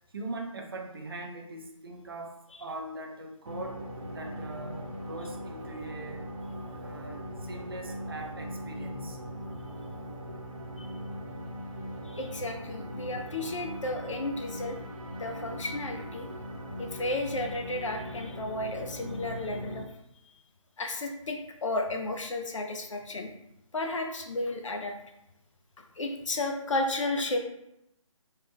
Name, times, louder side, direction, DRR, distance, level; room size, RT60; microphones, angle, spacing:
voice 1, 0.1-3.8 4.1-6.2 6.7-9.3, right 2 dB, 45° right, 3 dB, 0.5 m, -41 dB
sound 1, 3.5-19.8, equal, 85° right, 0.9 m, -40 dB
voice 2, 12.0-14.8 15.2-16.3 16.8-19.9 20.8-23.3 23.7-25.0 26.0-27.4, left 2 dB, 65° left, 4 dB, 0.6 m, -33 dB
3.2 x 2.2 x 3.5 m, 0.82 s
figure-of-eight pair, 165°, 17 cm